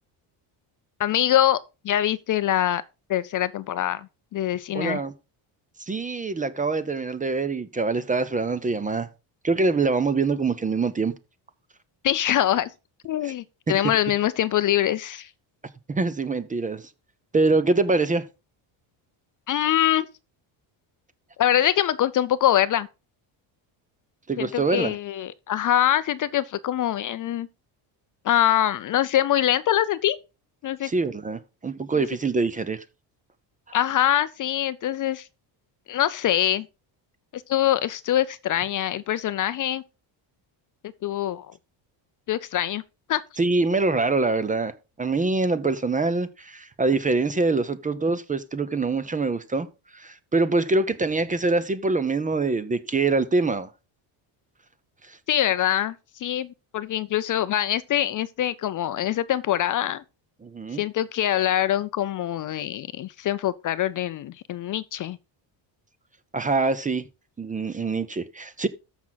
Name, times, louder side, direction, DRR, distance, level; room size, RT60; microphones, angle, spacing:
voice 1, 1.0-1.6 1.8-2.8 3.1-5.0 12.0-12.7 13.0-15.3 19.5-20.1 21.4-22.9 24.4-27.5 28.2-30.2 30.6-30.9 31.9-32.1 33.7-35.3 35.9-36.7 37.3-39.8 41.0-41.5 42.3-42.8 43.1-43.2 55.3-60.0 60.7-65.2, left 12 dB, 40° left, 0.4 m, -24 dB
voice 2, 4.7-5.1 5.8-9.1 9.4-11.1 13.2-13.3 15.9-16.9 17.3-18.3 24.3-24.9 30.8-32.8 43.4-44.7 45.0-49.7 49.9-53.7 55.1-55.2 60.4-60.8 66.3-67.0 67.4-68.7, right 3 dB, 15° right, 0.5 m, -24 dB
13.5 x 6.0 x 3.9 m
cardioid pair, 145°, 49 cm